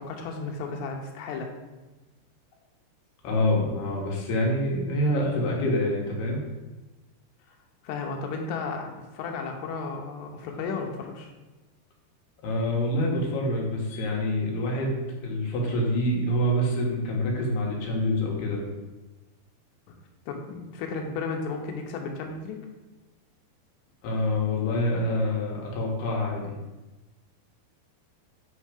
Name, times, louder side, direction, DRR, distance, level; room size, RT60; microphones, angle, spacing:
voice 1, 0.0-1.5 7.8-11.3 19.9-20.0 20.3-22.6, left 4 dB, 90° left, 2 dB, 3.0 m, -34 dB
voice 2, 3.2-6.4 12.4-18.6 24.0-26.6, left 1 dB, 75° left, -2 dB, 3.2 m, -26 dB
8.7 x 3.6 x 5.0 m, 1.1 s
omnidirectional pair, 4.9 m